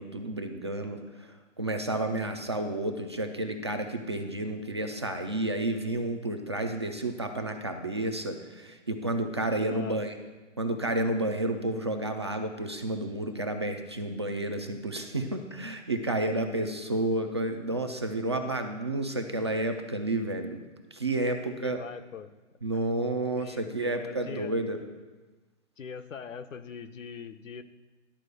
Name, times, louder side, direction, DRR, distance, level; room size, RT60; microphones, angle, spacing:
voice 1, 0.0-10.1 10.6-20.6 20.9-21.8 22.6-24.8, right 2 dB, 25° right, 5 dB, 0.4 m, -31 dB
voice 2, 9.6-10.0 21.6-22.3 23.4-24.5 25.8-27.6, left 6 dB, 85° left, 9 dB, 0.9 m, -42 dB
11.5 x 4.5 x 6.6 m, 1.2 s
hypercardioid pair, 150°, 38 cm